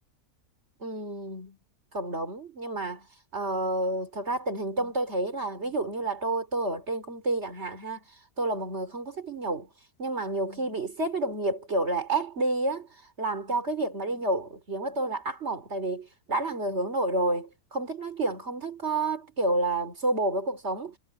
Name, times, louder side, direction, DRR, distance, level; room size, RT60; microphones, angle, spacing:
voice 1, 0.8-1.6 1.9-3.1 3.3-8.0 8.4-9.7 10.0-12.9 13.2-21.0, right 2 dB, 45° right, 3.7 m, -30 dB
omnidirectional pair, 1.6 m